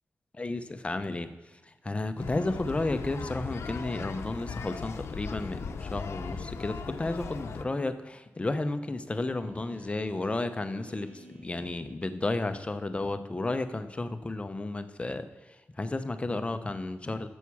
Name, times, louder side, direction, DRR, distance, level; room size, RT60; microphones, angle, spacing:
voice 1, 0.4-1.3 1.8-15.3 15.8-17.3, left 2 dB, 25° left, 10 dB, 0.6 m, -32 dB
sound 1, 2.2-7.6, left 5 dB, 75° left, 0.7 m, -38 dB
Speech synthesizer, 9.1-12.6, right 1 dB, 35° right, 4.5 m, -55 dB
9.2 x 7.2 x 7.2 m, 1.1 s
cardioid pair, 85°, 5 cm